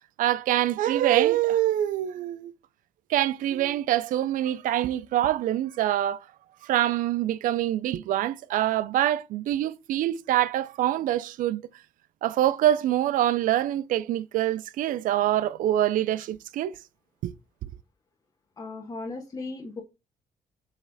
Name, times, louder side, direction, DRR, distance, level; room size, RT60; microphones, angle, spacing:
voice 1, 0.2-2.5 3.1-6.2 6.6-11.6 12.2-16.8 17.2-17.3, right 12 dB, 85° right, 0.5 m, -25 dB
voice 2, 18.6-19.8, left 3 dB, 30° left, 1.2 m, -36 dB
7.9 x 3.2 x 4.0 m
cardioid pair, 150°, 14 cm